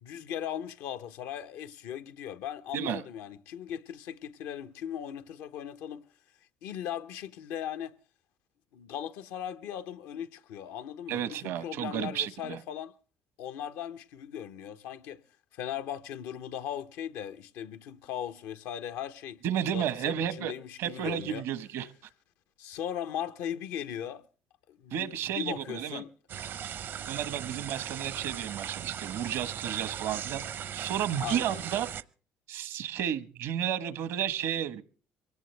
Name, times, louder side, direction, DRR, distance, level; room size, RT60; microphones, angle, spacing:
voice 1, 0.0-6.1 6.6-7.9 8.7-12.9 13.4-15.2 15.5-19.4 19.7-21.4 22.6-24.2 24.7-26.1 31.2-31.6, left 9 dB, 85° left, 0.8 m, -38 dB
voice 2, 11.1-12.6 19.4-20.5 20.8-21.9 24.9-26.0 27.1-30.4 30.7-31.9 32.5-34.8, right 10 dB, 75° right, 1.1 m, -32 dB
sound 1, 26.3-32.0, right 9 dB, 60° right, 0.7 m, -38 dB
23.0 x 17.5 x 3.3 m
cardioid pair, 90°, 4 cm